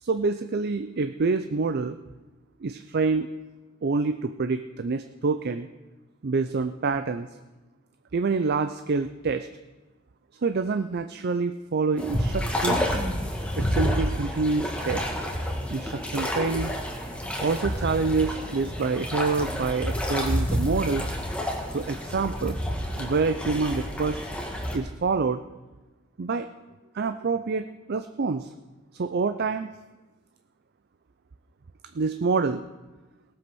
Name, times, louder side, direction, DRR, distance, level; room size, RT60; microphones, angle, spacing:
voice 1, 0.0-2.0 2.6-3.3 3.8-5.7 6.2-7.3 8.1-9.5 10.4-12.8 13.5-15.1 15.7-16.7 17.4-21.1 21.7-22.6 23.0-24.2 24.7-25.4 26.2-26.5 26.9-28.5 28.9-29.7 31.9-32.6, right 4 dB, 50° right, 9 dB, 0.5 m, -27 dB
sound 1, 12.0-24.8, equal, 5° left, 1.9 m, -29 dB
18.0 x 7.8 x 6.2 m, 1.2 s
head